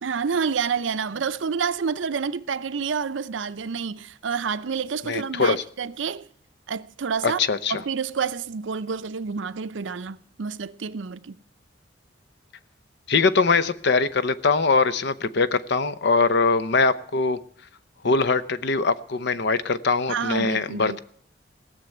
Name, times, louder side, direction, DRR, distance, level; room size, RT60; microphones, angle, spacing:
voice 1, 0.0-6.3 6.7-7.4 7.7-11.4 20.1-21.0, right 6 dB, 75° right, 0.6 m, -28 dB
voice 2, 5.1-5.6 7.2-7.8 13.1-17.4 18.0-21.0, left 4 dB, 60° left, 0.7 m, -22 dB
18.0 x 6.9 x 9.0 m
head